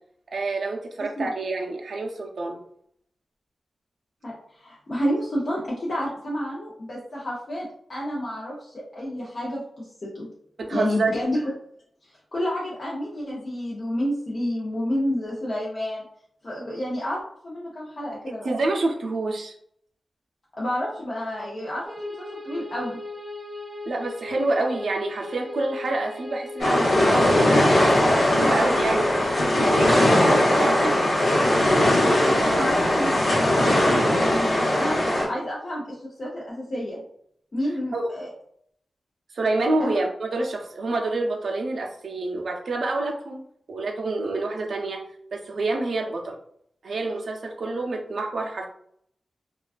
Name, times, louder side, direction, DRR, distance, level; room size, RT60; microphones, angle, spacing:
voice 1, 0.3-2.6 10.6-11.1 18.4-19.5 23.9-30.9 37.9-38.1 39.3-45.0 45.3-46.4 46.8-48.7, right 2 dB, 75° right, 2 dB, 0.4 m, -28 dB
voice 2, 4.2-10.3 10.7-11.5 12.3-16.0 16.4-18.5 20.6-23.0 30.2-31.4 31.8-35.0 35.3-37.0 37.5-38.3 39.8-39.9, equal, 50° left, -6 dB, 0.6 m, -30 dB
sound 1, 21.9-31.4, left 2 dB, 5° right, 0.7 m, -38 dB
sound 2, 26.6-35.2, left 1 dB, 90° left, 0.9 m, -20 dB
2.3 x 2.2 x 2.4 m, 0.66 s
wide cardioid pair, 100°, 0 cm